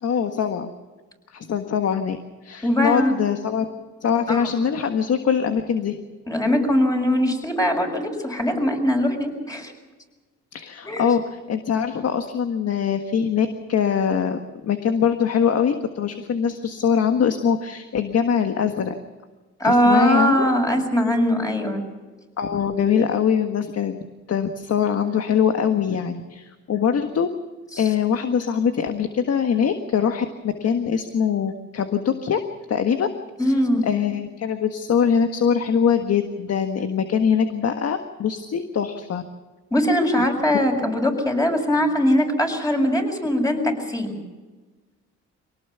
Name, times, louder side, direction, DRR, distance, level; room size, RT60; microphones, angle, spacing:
voice 1, 0.0-0.7 1.3-2.2 2.4-3.6 4.0-5.9 10.5-14.4 14.6-18.9 19.6-20.4 22.4-24.0 24.3-27.3 27.8-30.3 30.6-32.4 32.7-33.1 33.4-33.5 33.8-39.2, left 7 dB, 55° left, 7 dB, 1.6 m, -22 dB
voice 2, 2.6-3.1 4.3-4.5 6.3-9.7 10.8-11.1 19.6-21.8 27.8-27.9 33.4-33.9 39.7-44.2, equal, 10° left, 2 dB, 6.5 m, -21 dB
24.5 x 18.5 x 7.1 m, 1.3 s
cardioid pair, 90°, 30 cm